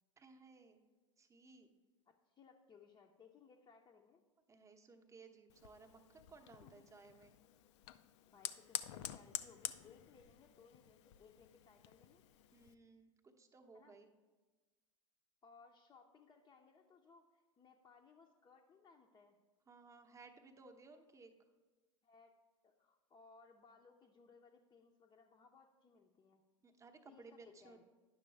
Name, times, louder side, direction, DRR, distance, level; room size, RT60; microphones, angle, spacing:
voice 1, 0.2-0.8 1.2-1.7 4.5-7.3 12.5-14.1 19.7-21.3 26.6-27.8, right 3 dB, 20° right, 6 dB, 0.8 m, -60 dB
voice 2, 2.1-4.2 6.4-6.9 8.3-12.2 13.7-14.0 15.4-19.4 22.0-22.3 22.6-26.4 27.0-27.8, left 5 dB, 25° left, 0 dB, 0.6 m, -64 dB
Fire, 5.5-12.7, left 12 dB, 60° left, 0.4 m, -49 dB
9.9 x 6.0 x 3.3 m, 1.2 s
hypercardioid pair, 95°, 17 cm